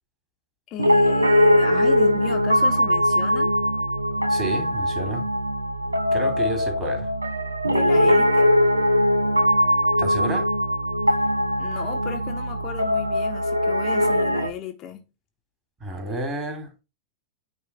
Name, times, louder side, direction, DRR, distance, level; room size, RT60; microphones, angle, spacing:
voice 1, 0.7-3.5 7.6-8.5 11.6-15.0, left 9 dB, 35° left, 1.0 m, -35 dB
Piano, 0.8-14.5, equal, 85° right, 0.6 m, -21 dB
voice 2, 4.3-5.3 6.1-7.1 10.0-10.5 15.8-16.7, right 1 dB, 25° right, 3.4 m, -30 dB
9.5 x 3.2 x 4.6 m
figure-of-eight pair, 90°, 0 cm